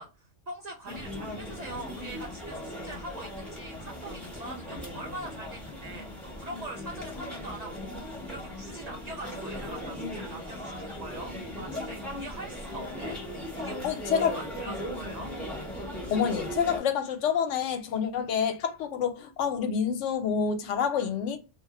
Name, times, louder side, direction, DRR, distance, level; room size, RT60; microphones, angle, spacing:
voice 1, 0.0-13.2 13.5-15.3, right 2 dB, 55° right, 0.4 m, -43 dB
sound 1, 0.9-16.8, left 1 dB, ahead, 0.6 m, -38 dB
voice 2, 13.8-14.4 16.1-21.4, left 7 dB, 80° left, 0.9 m, -28 dB
2.2 x 2.1 x 2.8 m
omnidirectional pair, 1.2 m